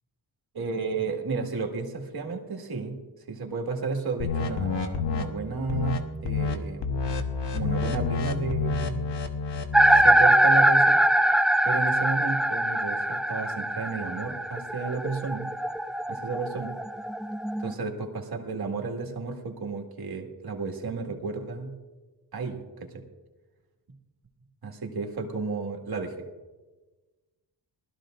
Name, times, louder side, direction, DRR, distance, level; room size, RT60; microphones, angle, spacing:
voice 1, 0.5-3.0 3.3-6.9 7.5-9.1 10.0-11.0 11.6-15.5 16.1-16.8 17.6-21.7 22.3-23.0 24.6-26.1, right 4 dB, 60° right, 1 dB, 2.0 m, -32 dB
sound 1, 4.2-5.2 5.7-6.0 6.2-6.5 6.8-10.1, left 5 dB, 80° left, 1.2 m, -29 dB
sound 2, 9.7-17.7, right 1 dB, ahead, 0.3 m, -23 dB
19.5 x 13.5 x 2.5 m, 1.3 s
cardioid pair, 90°, 42 cm